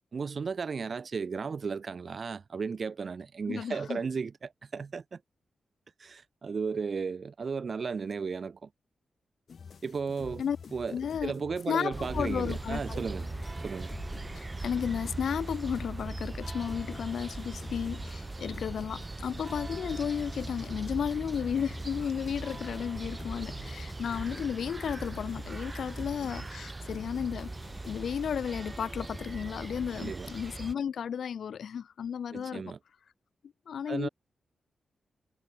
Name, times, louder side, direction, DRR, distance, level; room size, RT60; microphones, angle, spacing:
voice 1, 0.1-5.2 6.0-8.7 9.8-10.4 10.7-11.0 11.2-13.2 13.6-13.9 30.0-30.3 32.3-32.8 33.9-34.1, right 5 dB, 50° right, 0.3 m, -34 dB
voice 2, 3.5-4.0 10.4-10.6 10.9-11.3 11.7-13.0 14.3-27.5 27.9-32.7 33.7-34.1, left 8 dB, 75° left, 0.3 m, -33 dB
sound 1, 9.5-28.0, left 6 dB, 60° left, 2.4 m, -49 dB
sound 2, 11.9-30.7, right 2 dB, 20° right, 1.5 m, -39 dB
wide cardioid pair, 105°, 0 cm